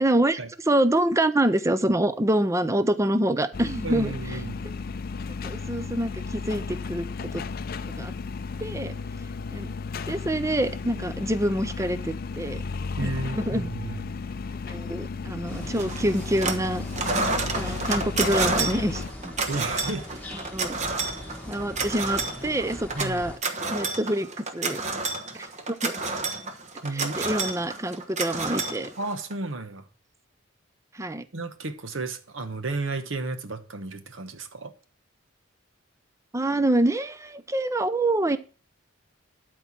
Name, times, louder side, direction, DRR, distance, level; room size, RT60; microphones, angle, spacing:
voice 1, 0.0-0.4 0.7-4.1 4.6-4.8 5.3-7.1 7.3-7.4 8.0-8.1 8.6-8.9 9.5-9.7 10.0-12.6 13.0-13.7 14.7-16.8 17.5-19.3 20.3-20.8 21.5-23.3 23.6-24.3 24.5-24.8 25.3-26.0 26.9-28.9 30.9-31.2 36.3-38.4, right 1 dB, 15° right, 0.5 m, -26 dB
sound 1, 3.5-19.1, left 4 dB, 45° left, 0.4 m, -34 dB
voice 2, 3.8-4.6 13.0-14.1 19.5-20.1 22.9-23.2 26.8-27.2 29.0-29.8 31.3-34.7, right 2 dB, 70° right, 1.1 m, -33 dB
sound 2, 15.5-23.4, left 1 dB, 10° left, 1.6 m, -41 dB
sound 3, 15.8-16.7 16.9-29.3, right 3 dB, 35° right, 1.2 m, -30 dB
12.5 x 4.5 x 5.9 m
head